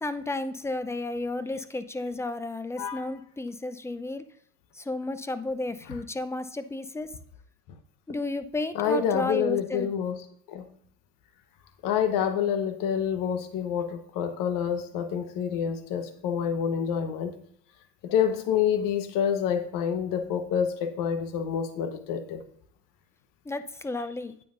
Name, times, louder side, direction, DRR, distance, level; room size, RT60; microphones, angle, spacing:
voice 1, 0.0-4.2 4.8-7.1 8.1-9.9 23.5-24.4, left 2 dB, 5° left, 11 dB, 0.6 m, -32 dB
voice 2, 2.8-3.1 8.7-10.2 10.5-10.7 11.8-17.3 18.0-22.4, left 8 dB, 60° left, 8 dB, 1.2 m, -27 dB
9.5 x 9.2 x 2.6 m, 0.64 s
supercardioid pair, 85°, 37 cm